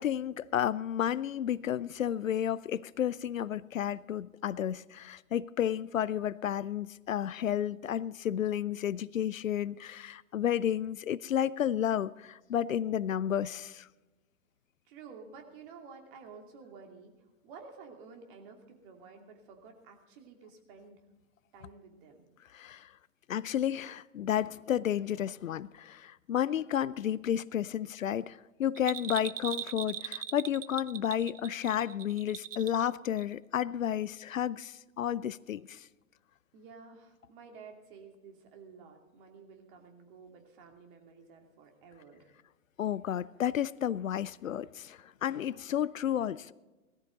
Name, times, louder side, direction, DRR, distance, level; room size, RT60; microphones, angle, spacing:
voice 1, 0.0-13.9 22.5-22.9 23.3-35.9 42.8-46.5, left 10 dB, 75° left, 20 dB, 0.6 m, -32 dB
voice 2, 14.8-17.1 17.4-21.0 21.5-22.2 36.5-42.3, right 5 dB, 40° right, 3 dB, 2.8 m, -52 dB
Bell, 28.8-32.9 33.2-33.3, right 10 dB, 65° right, 0.7 m, -40 dB
18.0 x 13.5 x 3.9 m, 1.2 s
figure-of-eight pair, 115°, 41 cm